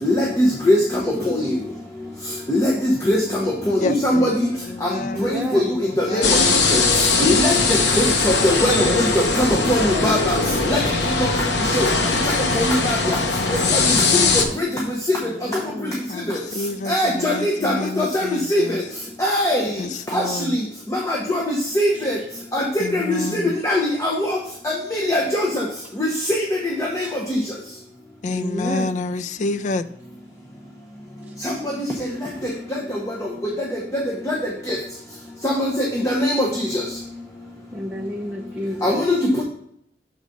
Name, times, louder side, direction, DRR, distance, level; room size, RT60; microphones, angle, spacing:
voice 1, 0.0-1.5 2.5-4.5 4.8-4.9 5.2-6.4 6.7-6.8 7.2-10.4 10.7-10.8 11.1-11.3 11.6-11.9 12.2-13.2 13.5-14.7 15.1-15.2 15.5-15.9 16.3-16.4 16.9-18.8 19.2-19.8 20.1-20.6 20.9-22.2 22.5-24.4 24.6-25.6 26.0-27.4 31.4-32.1 32.7-33.7 33.9-34.4 34.7-34.8 35.4-36.8 38.8-39.4, left 1 dB, 20° left, -2 dB, 0.8 m, -22 dB
voice 2, 3.8-5.3 5.8-6.5 13.0-14.5 16.1-18.8 19.8-20.6 22.8-23.5 28.2-29.9, left 2 dB, 45° left, 13 dB, 0.3 m, -29 dB
voice 3, 5.1-5.8 15.2-16.0 17.3-17.4 21.9-22.1 23.0-23.5 26.2-26.3 27.0-27.1 28.3-29.0 31.2-31.3 37.7-39.2, equal, 10° right, -3 dB, 0.6 m, -32 dB
sound 1, 6.2-14.4, left 3 dB, 80° left, 0.9 m, -20 dB
6.3 x 4.1 x 5.2 m, 0.72 s
head